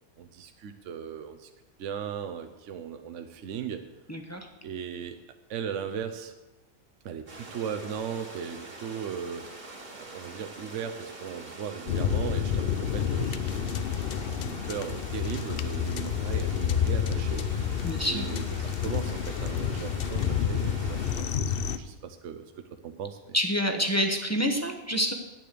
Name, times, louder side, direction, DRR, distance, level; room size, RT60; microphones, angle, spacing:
voice 1, 0.2-1.5 1.8-3.8 4.6-5.2 5.5-6.3 7.0-9.5 9.9-17.8 18.1-22.5 22.8-23.3, right 7 dB, 65° right, 7 dB, 1.0 m, -37 dB
voice 2, 4.1-4.5 17.8-18.3 23.3-25.1, equal, 10° left, 2 dB, 1.0 m, -27 dB
sound 1, 7.3-21.2, right 2 dB, 40° right, 2.0 m, -44 dB
sound 2, 11.9-21.8, left 8 dB, 60° left, 0.6 m, -29 dB
10.0 x 9.3 x 6.8 m, 1.1 s
omnidirectional pair, 1.5 m